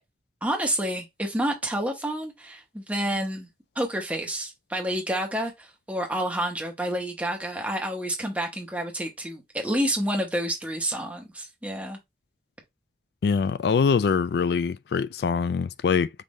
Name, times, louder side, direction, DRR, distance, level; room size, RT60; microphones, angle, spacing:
voice 1, 0.4-3.5 3.7-12.0, right 1 dB, 10° right, 1.0 m, -29 dB
voice 2, 13.2-16.1, left 5 dB, 60° left, 0.3 m, -23 dB
5.4 x 2.6 x 3.1 m
head